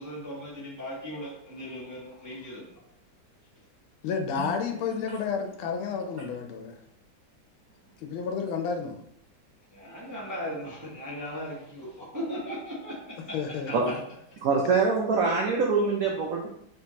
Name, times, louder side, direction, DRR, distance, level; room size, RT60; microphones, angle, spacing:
voice 1, 0.0-2.6 9.7-13.2 13.7-13.8, equal, 25° right, -5 dB, 0.4 m, -37 dB
voice 2, 4.0-6.7 8.0-9.0 13.3-13.9, left 6 dB, 90° left, 4 dB, 1.5 m, -31 dB
voice 3, 14.4-16.5, right 4 dB, 85° right, 0 dB, 0.7 m, -24 dB
4.5 x 3.5 x 2.8 m, 0.75 s
omnidirectional pair, 2.2 m